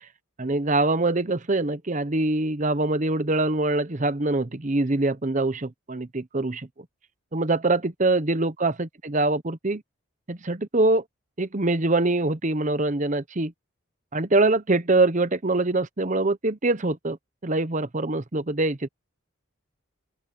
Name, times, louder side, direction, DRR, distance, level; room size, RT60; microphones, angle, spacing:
voice 1, 0.4-6.7 7.3-9.8 10.3-11.0 11.4-13.5 14.1-17.2 17.4-18.9, right 2 dB, 35° right, 0.9 m, -24 dB
open air
head